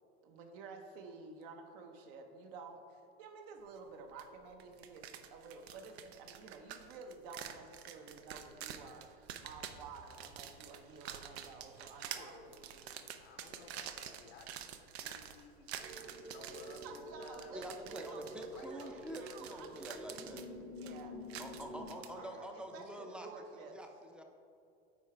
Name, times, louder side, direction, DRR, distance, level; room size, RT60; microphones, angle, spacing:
voice 1, 0.2-12.9 13.4-13.6 16.8-20.1 20.8-21.2 21.6-23.8, right 4 dB, 65° right, 5 dB, 0.9 m, -52 dB
sound 1, 4.2-4.3 4.6-22.1, right 9 dB, 85° right, 0.6 m, -48 dB
sound 2, 9.4-12.7 13.4-14.5 14.8-15.4, right 2 dB, 45° right, 1.6 m, -64 dB
voice 2, 11.8-16.1 16.3-17.5 18.5-19.3 22.1-22.8, left 4 dB, 85° left, 3 dB, 0.8 m, -56 dB
sound 3, 15.8-22.0, equal, 25° right, 0.9 m, -49 dB
voice 3, 17.5-20.5 21.4-24.2, right 1 dB, 5° right, 3 dB, 0.4 m, -47 dB
8.7 x 4.8 x 3.3 m, 2.5 s
supercardioid pair, 125°, 31 cm